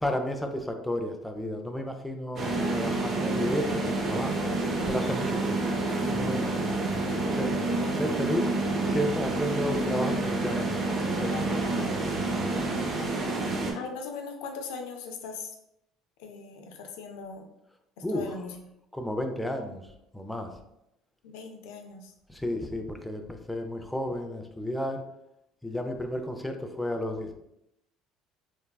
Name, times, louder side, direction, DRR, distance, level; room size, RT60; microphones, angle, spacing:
voice 1, 0.0-4.3 4.9-5.7 6.1-6.9 7.3-7.6 7.9-8.5 8.9-10.8 11.2-12.0 18.0-18.3 18.9-19.8 20.1-20.5 22.3-25.0 25.6-27.3, equal, 5° left, 4 dB, 0.4 m, -32 dB
sound 1, 2.4-13.7, right 2 dB, 45° right, 0.6 m, -28 dB
voice 2, 13.7-15.6 16.2-17.5 18.1-18.5 21.2-22.1, left 5 dB, 80° left, 4 dB, 0.4 m, -39 dB
3.3 x 2.2 x 2.3 m, 0.82 s
supercardioid pair, 90°, 0 cm